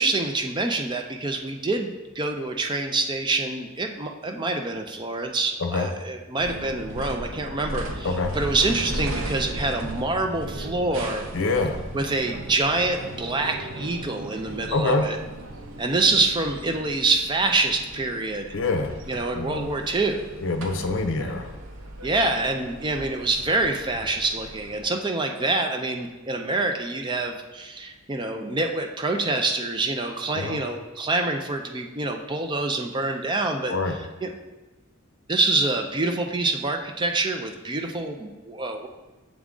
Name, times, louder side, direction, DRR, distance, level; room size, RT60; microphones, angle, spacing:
voice 1, 0.0-11.2 11.9-15.2 15.8-18.5 19.1-20.2 22.0-33.8 34.2-34.3 35.3-38.9, right 2 dB, 25° right, 4 dB, 0.4 m, -26 dB
sound 1, 6.4-24.8, right 1 dB, 85° right, 0.7 m, -37 dB
voice 2, 11.3-11.8 14.7-15.1 18.5-18.9 19.3-19.7 20.4-21.5 30.3-30.6 33.7-34.0, left 3 dB, 70° left, 7 dB, 0.6 m, -25 dB
7.2 x 3.6 x 3.7 m, 1.2 s
head